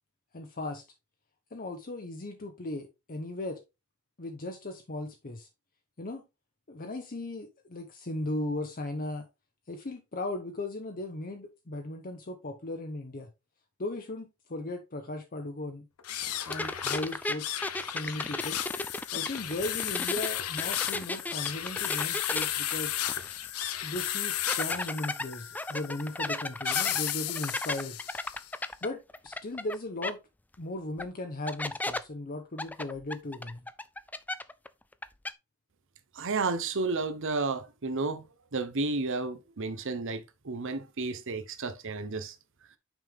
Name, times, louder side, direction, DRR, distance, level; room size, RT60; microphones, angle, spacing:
voice 1, 0.3-0.8 1.5-3.6 4.2-5.5 6.0-6.2 6.7-9.3 9.7-13.3 13.8-15.9 16.5-17.5 17.8-18.6 19.1-23.0 23.8-28.0 28.8-30.2 30.6-33.7, left 2 dB, 40° left, 0.8 m, -37 dB
sound 1, 16.0-28.5, left 12 dB, 75° left, 0.8 m, -34 dB
sound 2, 16.5-20.3 20.6-23.5 23.8-23.9 24.5-29.8 30.0-30.1 31.0-31.1 31.5-32.0 32.6-34.7 34.9-35.3, left 2 dB, 5° left, 0.3 m, -34 dB
voice 2, 36.2-38.3 38.5-42.3, right 3 dB, 55° right, 0.8 m, -32 dB
6.1 x 5.4 x 3.5 m
head